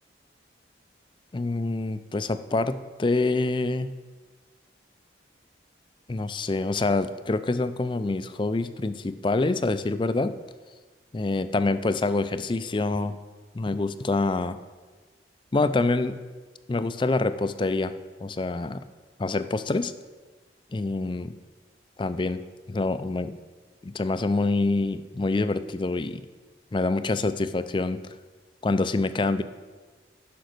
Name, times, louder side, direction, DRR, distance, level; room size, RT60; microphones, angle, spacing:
voice 1, 1.3-3.9 6.1-10.3 11.1-13.2 13.5-14.6 15.5-16.2 16.7-17.9 18.2-18.8 19.2-19.9 20.7-21.4 22.0-22.4 22.7-23.3 23.8-26.2 26.7-28.0 28.6-29.4, left 3 dB, 25° left, 12 dB, 0.4 m, -26 dB
10.0 x 6.1 x 6.6 m, 1.4 s
head